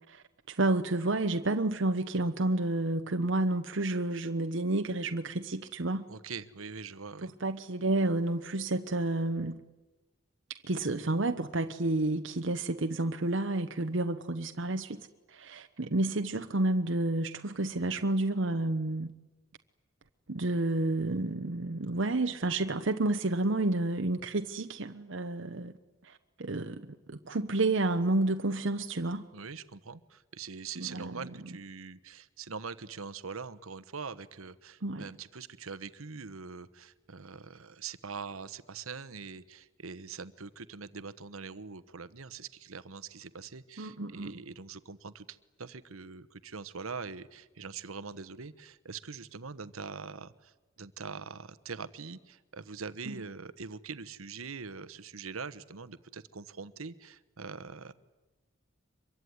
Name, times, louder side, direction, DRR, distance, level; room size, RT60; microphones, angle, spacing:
voice 1, 0.1-6.1 7.4-9.6 10.7-19.1 20.3-25.7 26.0-29.2 30.8-31.3 34.8-35.1 43.8-44.3 53.1-53.2, right 2 dB, 60° right, 1.0 m, -30 dB
voice 2, 6.1-7.3 29.3-57.9, right 5 dB, 85° right, 1.1 m, -43 dB
24.5 x 23.0 x 9.5 m
head